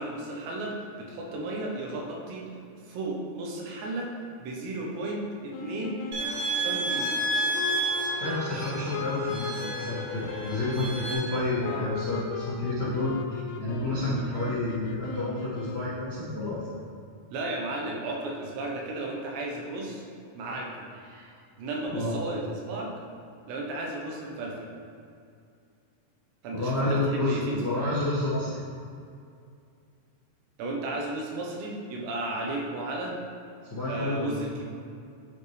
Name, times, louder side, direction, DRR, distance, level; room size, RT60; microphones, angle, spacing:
voice 1, 0.0-2.5 2.9-4.1 4.4-6.0 6.6-7.2 11.6-11.9 17.3-20.1 20.3-20.9 21.6-22.9 23.5-24.7 26.4-27.7 30.6-33.1 33.9-34.7, right 2 dB, 85° right, -1 dB, 3.2 m, -34 dB
sound 1, 5.5-16.3, left 6 dB, 80° left, 2.6 m, -38 dB
sound 2, 6.1-11.1, right 2 dB, 55° right, 3.1 m, -31 dB
voice 2, 8.1-16.6 21.1-21.3 21.9-22.1 26.5-28.6 33.7-34.5, left 2 dB, 65° left, -12 dB, 1.0 m, -30 dB
12.0 x 4.6 x 3.3 m, 2.4 s
omnidirectional pair, 4.9 m